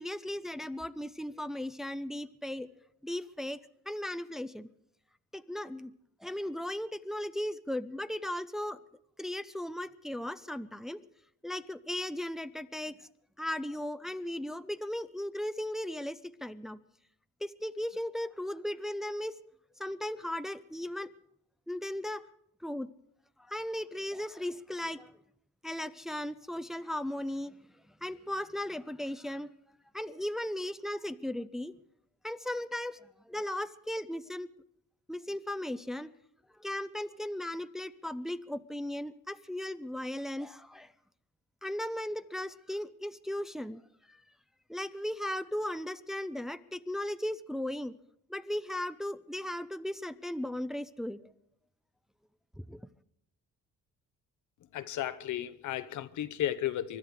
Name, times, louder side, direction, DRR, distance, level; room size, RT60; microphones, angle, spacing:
voice 1, 0.0-2.7 3.0-3.6 3.9-4.7 5.3-5.9 6.2-8.8 9.2-11.0 11.4-13.1 13.4-16.8 17.4-19.4 19.8-21.1 21.7-22.2 22.6-22.9 23.5-25.1 25.6-27.6 27.9-29.5 29.9-31.7 32.2-34.5 35.1-36.1 36.6-40.9 41.6-43.8 44.1-44.2 44.7-48.0 48.3-51.2 52.6-52.8, left 1 dB, ahead, 0.6 m, -36 dB
voice 2, 54.7-57.0, left 12 dB, 75° left, 0.9 m, -34 dB
24.5 x 12.0 x 4.9 m
cardioid pair, 90°, 30 cm